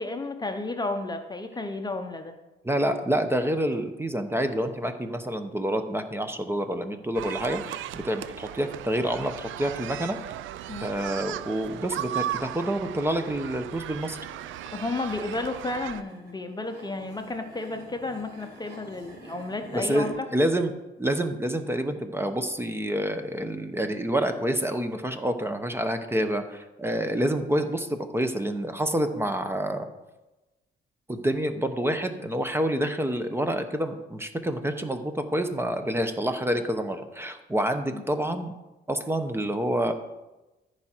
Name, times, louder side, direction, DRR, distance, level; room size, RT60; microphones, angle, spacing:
voice 1, 0.0-2.3 10.7-10.9 14.7-20.3 37.9-38.0, left 2 dB, 20° left, 6 dB, 0.8 m, -32 dB
voice 2, 2.6-10.2 10.8-14.2 19.7-29.9 31.1-38.5 38.9-39.9, right 1 dB, 10° right, 7 dB, 0.9 m, -28 dB
sound 1, 7.1-16.0, right 12 dB, 80° right, 0.4 m, -36 dB
sound 2, 13.7-20.1, right 2 dB, 55° right, 3.1 m, -49 dB
14.0 x 4.9 x 4.5 m, 1.0 s
cardioid pair, 90°, 20 cm